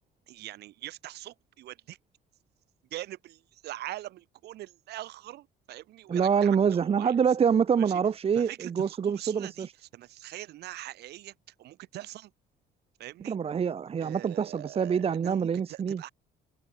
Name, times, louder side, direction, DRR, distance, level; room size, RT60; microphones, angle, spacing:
voice 1, 0.3-2.0 2.9-7.1 7.8-8.0 8.3-12.3 13.0-13.4 14.0-16.1, right 15 dB, 75° right, 6.8 m, -43 dB
voice 2, 6.1-9.7 13.2-16.0, right 7 dB, 35° right, 1.3 m, -26 dB
open air
cardioid pair, 110°, 17 cm